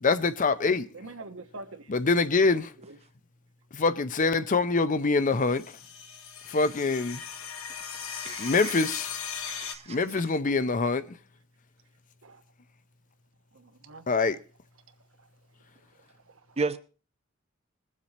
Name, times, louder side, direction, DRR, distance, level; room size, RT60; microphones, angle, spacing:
voice 1, 0.0-0.9 1.9-2.7 3.7-5.6 6.5-7.2 8.4-9.1 9.9-11.0 14.1-14.4, left 3 dB, 40° left, 0.6 m, -24 dB
voice 2, 0.9-1.9 2.8-3.0 12.2-12.4 13.5-14.1 15.2-15.3 16.1-16.6, right 2 dB, 70° right, 1.2 m, -45 dB
sound 1, 5.4-9.8, left 7 dB, 85° left, 1.5 m, -38 dB
voice 3, 8.2-8.9 9.4-10.2 16.6-16.8, right 4 dB, 30° right, 0.7 m, -34 dB
22.0 x 7.4 x 4.1 m
head